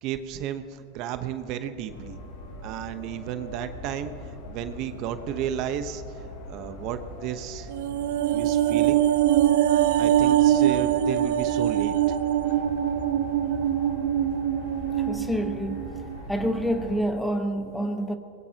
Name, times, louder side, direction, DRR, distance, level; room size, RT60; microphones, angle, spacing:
voice 1, 0.0-2.2 2.6-6.0 6.5-7.7 8.3-9.1 10.0-11.9, right 10 dB, 55° right, 1.0 m, -33 dB
sound 1, 1.9-17.0, left 1 dB, 75° left, 3.1 m, -40 dB
sound 2, 7.7-16.2 16.5-16.6, right 11 dB, 70° right, 0.7 m, -23 dB
voice 2, 14.9-16.0 16.3-18.2, equal, 5° left, 1.2 m, -28 dB
23.0 x 20.0 x 3.0 m
supercardioid pair, 115°, 0 cm